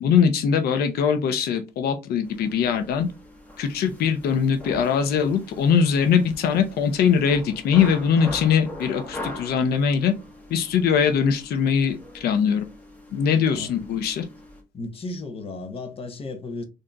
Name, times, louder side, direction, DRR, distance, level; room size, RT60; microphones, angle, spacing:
voice 1, 0.0-3.1 3.6-10.1 10.5-12.7 13.1-14.3, left 7 dB, 70° left, 0.7 m, -21 dB
sound 1, 2.2-14.6, left 1 dB, 10° left, 1.2 m, -41 dB
voice 2, 14.7-16.7, left 2 dB, 35° left, 0.8 m, -34 dB
3.8 x 2.7 x 3.4 m
cardioid pair, 110°, 17 cm